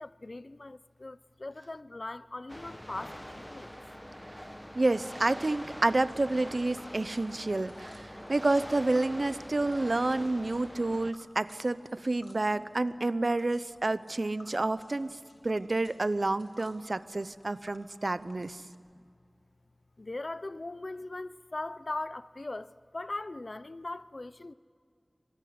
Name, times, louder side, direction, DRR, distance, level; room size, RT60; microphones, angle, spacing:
voice 1, 0.0-3.7 18.6-19.1 20.0-24.5, left 2 dB, 65° left, 0.6 m, -40 dB
sound 1, 2.5-11.1, equal, 10° left, 1.0 m, -44 dB
voice 2, 4.7-15.2 15.4-18.6, right 2 dB, 70° right, 0.7 m, -29 dB
Tick, 6.1-18.8, left 2 dB, 80° left, 2.9 m, -60 dB
25.5 x 19.5 x 9.5 m
wide cardioid pair, 45°, 0 cm